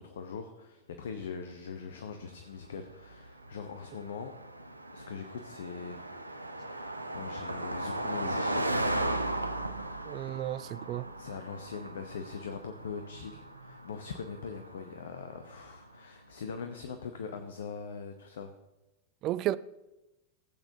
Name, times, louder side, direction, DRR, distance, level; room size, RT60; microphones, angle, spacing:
voice 1, 0.0-4.4 4.9-6.0 6.6-9.1 11.2-18.5, left 5 dB, 65° left, 0.7 m, -42 dB
Car passing by, 2.2-15.9, right 1 dB, 85° right, 0.6 m, -37 dB
voice 2, 10.1-11.1 19.2-19.6, right 14 dB, 35° right, 0.3 m, -32 dB
15.0 x 8.0 x 2.8 m
figure-of-eight pair, 90°, 0 cm